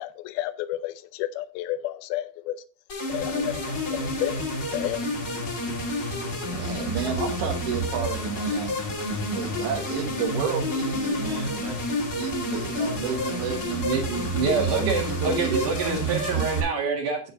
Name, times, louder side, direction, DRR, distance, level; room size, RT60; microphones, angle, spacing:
voice 1, 0.0-2.6 3.1-4.5 4.7-5.1, left 14 dB, 80° left, 2.3 m, -31 dB
sound 1, 2.9-16.6, equal, 35° left, 2.9 m, -29 dB
voice 2, 6.5-8.8 9.2-13.9 14.5-15.7 16.4-16.5, right 7 dB, 80° right, 3.6 m, -31 dB
voice 3, 13.8-17.2, right 5 dB, 55° right, 2.9 m, -26 dB
9.3 x 9.3 x 2.6 m
omnidirectional pair, 5.0 m